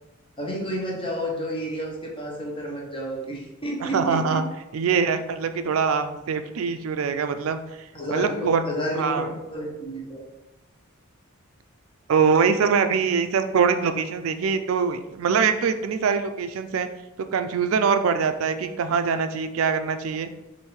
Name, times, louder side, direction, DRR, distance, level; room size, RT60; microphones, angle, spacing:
voice 1, 0.4-4.2 7.9-10.2, equal, 25° left, -2 dB, 1.0 m, -30 dB
voice 2, 3.8-4.4 4.7-7.6 8.1-8.6 9.0-9.3 12.1-16.9 17.2-20.3, right 6 dB, 70° right, 9 dB, 0.4 m, -23 dB
6.4 x 2.6 x 3.1 m, 1.0 s
head